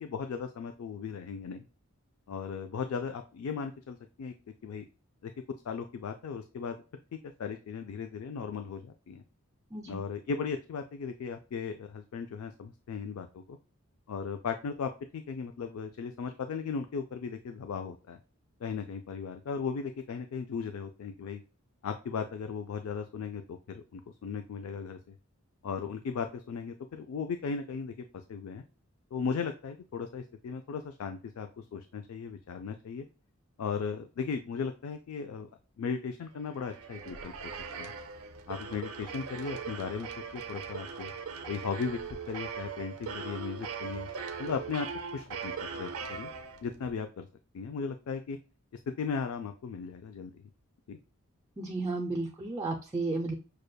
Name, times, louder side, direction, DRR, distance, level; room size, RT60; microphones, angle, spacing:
voice 1, 0.0-1.7 2.3-4.3 4.6-4.9 5.2-5.3 5.6-6.8 7.1-9.2 9.9-13.6 14.1-18.2 18.6-21.4 21.8-25.1 25.6-28.6 29.1-33.0 33.6-35.5 35.8-37.9 38.5-41.1 41.5-42.0 42.3-44.1 44.4-44.9 45.1-46.3 46.6-47.3 47.5-48.4 49.0-50.4 50.9-51.0, left 5 dB, 70° left, 7 dB, 0.3 m, -37 dB
sound 1, 36.4-46.9, right 6 dB, 75° right, 0.5 m, -40 dB
voice 2, 51.6-53.3, right 3 dB, 15° right, -1 dB, 0.3 m, -33 dB
6.4 x 2.2 x 2.2 m, 0.35 s
head